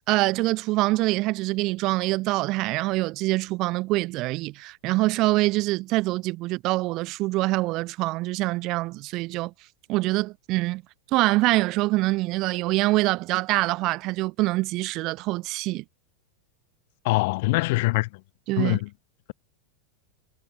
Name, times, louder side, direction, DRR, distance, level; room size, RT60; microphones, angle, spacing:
voice 1, 0.1-9.5 9.9-10.8 11.1-15.8 18.5-18.8, right 20 dB, 40° right, 0.3 m, -25 dB
voice 2, 17.0-18.1 18.6-18.9, left 23 dB, 50° left, 0.6 m, -23 dB
figure-of-eight pair, 90°, 0 cm